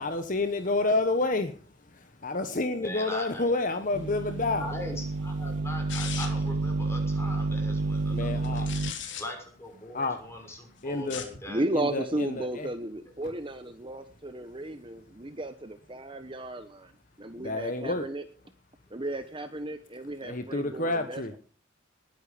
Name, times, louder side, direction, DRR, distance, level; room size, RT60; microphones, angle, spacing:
voice 1, 0.0-4.7 8.0-9.2 9.9-10.2 10.8-11.2 11.7-12.7 13.2-13.3 17.3-18.1 20.2-21.3, left 2 dB, 40° left, 1.3 m, -30 dB
voice 2, 2.8-3.6 4.6-8.7 9.1-11.6, left 1 dB, 15° left, 6.1 m, -40 dB
sound 1, 3.9-8.9, right 3 dB, 65° right, 0.9 m, -30 dB
sound 2, 5.9-6.5 8.4-9.2 11.0-11.4, left 8 dB, 60° left, 3.6 m, -38 dB
voice 3, 11.5-16.9 17.2-18.2 18.9-21.4, right 1 dB, 25° right, 1.1 m, -34 dB
20.0 x 10.5 x 5.1 m
head